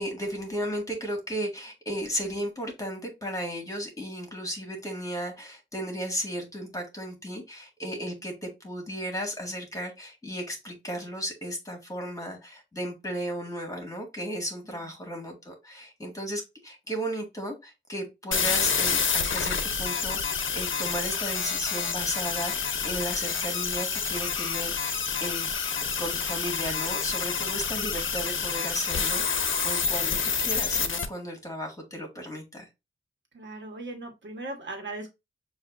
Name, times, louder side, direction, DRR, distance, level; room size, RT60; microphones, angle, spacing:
voice 1, 0.0-25.5 26.0-32.7, equal, 15° left, 1.7 m, -35 dB
sound 1, 18.3-31.0, left 6 dB, 80° left, 0.7 m, -28 dB
voice 2, 33.3-35.1, right 2 dB, 70° right, 1.3 m, -38 dB
6.4 x 2.7 x 2.6 m
wide cardioid pair, 110°, 20 cm